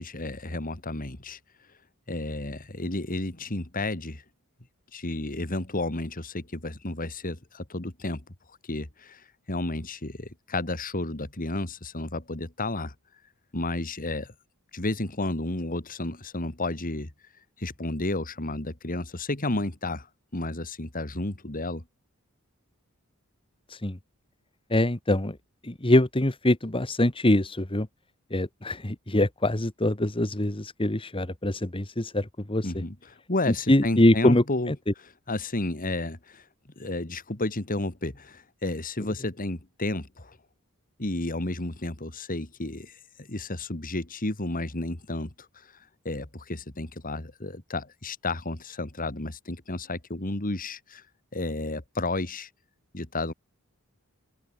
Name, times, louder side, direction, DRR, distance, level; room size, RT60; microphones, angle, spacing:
voice 1, 0.0-1.4 2.1-4.2 4.9-8.2 8.7-12.9 13.5-14.3 14.7-17.1 17.6-20.1 20.3-21.8 32.6-32.9 33.3-34.7 35.3-36.4 36.8-40.4 41.0-45.3 46.0-51.0 51.3-52.5 52.9-53.3, left 2 dB, 40° left, 2.4 m, -32 dB
voice 2, 23.7-24.0 24.7-25.4 25.6-27.9 28.3-32.7 33.5-34.7, left 1 dB, 25° left, 1.7 m, -24 dB
head